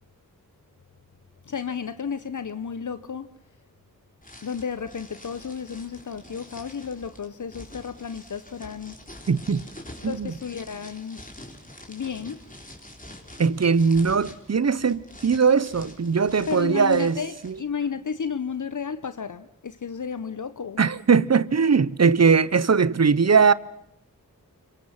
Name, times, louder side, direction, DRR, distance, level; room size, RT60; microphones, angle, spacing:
voice 1, 1.4-3.3 4.4-9.0 10.0-11.2 11.9-12.4 16.5-20.8, left 6 dB, 60° left, 0.9 m, -32 dB
sound 1, 4.2-17.6, left 1 dB, 25° left, 4.3 m, -46 dB
voice 2, 9.3-9.7 10.0-10.3 13.4-17.5 20.8-23.5, right 5 dB, 45° right, 0.9 m, -20 dB
26.5 x 23.5 x 5.8 m
cardioid pair, 45°, 35 cm